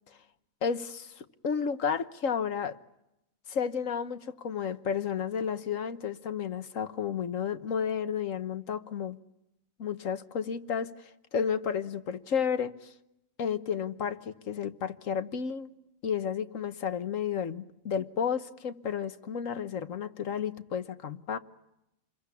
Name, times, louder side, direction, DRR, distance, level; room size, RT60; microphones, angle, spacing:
voice 1, 0.6-2.8 3.5-9.2 9.8-12.7 13.4-15.7 16.0-21.4, left 7 dB, 65° left, 1.5 m, -32 dB
28.0 x 22.0 x 8.4 m
omnidirectional pair, 1.5 m